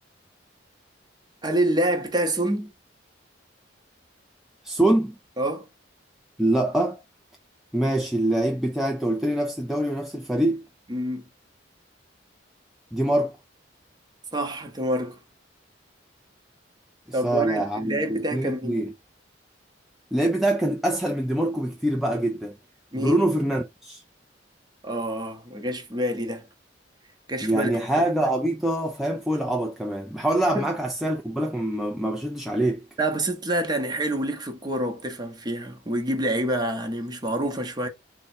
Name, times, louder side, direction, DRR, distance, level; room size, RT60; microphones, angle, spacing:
voice 1, 1.4-2.7 5.4-5.7 10.9-11.3 14.3-15.2 17.1-18.8 22.9-23.2 24.8-26.5 27.3-27.7 30.5-30.7 33.0-37.9, right 1 dB, 20° right, 0.7 m, -27 dB
voice 2, 4.6-5.1 6.4-7.0 7.7-10.6 12.9-13.3 17.1-18.9 20.1-22.6 23.0-24.0 27.4-32.8, right 1 dB, ahead, 0.3 m, -24 dB
3.5 x 2.1 x 4.2 m
head